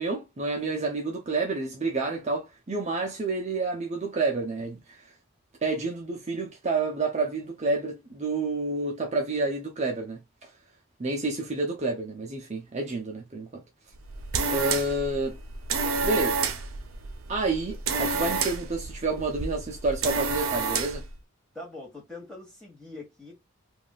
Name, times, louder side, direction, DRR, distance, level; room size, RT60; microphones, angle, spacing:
voice 1, 0.0-5.1 5.6-10.5 11.0-13.6 14.5-15.4 16.0-16.4 17.3-21.0, right 3 dB, 35° right, 0.6 m, -29 dB
sound 1, 14.0-21.1, right 4 dB, 80° right, 0.7 m, -30 dB
voice 2, 21.5-23.4, left 2 dB, 5° left, 1.5 m, -43 dB
3.6 x 2.5 x 2.3 m
head